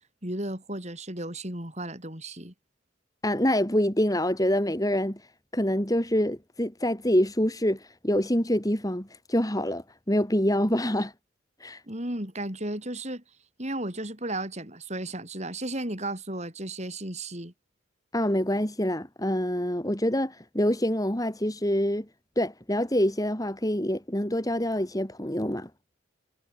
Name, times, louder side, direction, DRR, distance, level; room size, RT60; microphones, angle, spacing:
voice 1, 0.2-2.5 11.9-13.2 13.6-17.5, right 1 dB, 35° right, 5.9 m, -34 dB
voice 2, 3.2-5.2 5.5-11.1 11.6-11.8 18.1-22.1 22.4-25.7, equal, 15° left, 3.0 m, -26 dB
head